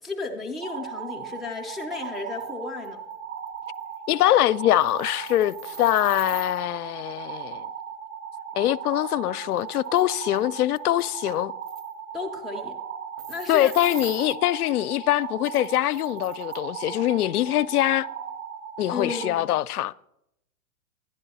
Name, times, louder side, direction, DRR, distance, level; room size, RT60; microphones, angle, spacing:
voice 1, 0.0-3.0 12.1-12.8 13.3-13.7 18.9-19.5, left 4 dB, ahead, 0.4 m, -33 dB
sound 1, 0.6-19.3, right 7 dB, 75° right, 4.0 m, -37 dB
sound 2, 2.4-2.5 2.8-2.9 3.5-3.6 3.7-3.9 4.7-6.6 9.0-9.1 9.5-10.0 10.4-10.5 10.8-11.4 11.7-11.9 13.2-14.3 15.4-16.6, right 8 dB, 60° right, 0.9 m, -43 dB
voice 2, 4.1-7.7 8.5-11.5 13.5-18.1 18.8-19.9, left 14 dB, 80° left, 0.5 m, -23 dB
11.5 x 10.0 x 4.1 m
hypercardioid pair, 135°, 44 cm